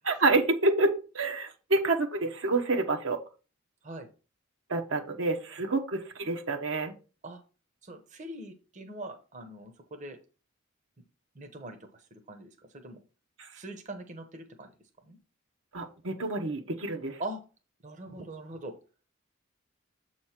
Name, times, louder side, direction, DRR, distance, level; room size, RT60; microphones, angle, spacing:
voice 1, 0.1-3.2 4.7-6.9 15.7-17.2, right 2 dB, 70° right, 4 dB, 1.0 m, -28 dB
voice 2, 7.8-10.2 11.3-11.8 12.1-13.0 13.5-14.7 15.1-15.2 17.2-17.4 17.8-18.7, right 1 dB, 35° right, 5 dB, 0.9 m, -42 dB
7.4 x 3.1 x 5.7 m, 0.34 s
head